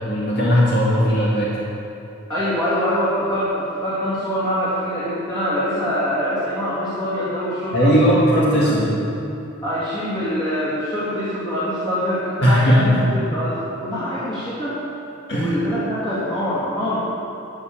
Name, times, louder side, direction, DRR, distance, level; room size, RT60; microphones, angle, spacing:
voice 1, 0.1-1.5 7.7-8.9 12.4-13.0 15.3-15.6, equal, 55° left, -7 dB, 1.9 m, -17 dB
voice 2, 2.3-7.9 8.3-8.7 9.6-14.8 15.3-17.0, equal, 20° left, -11 dB, 2.5 m, -24 dB
12.5 x 5.4 x 8.7 m, 2.8 s
head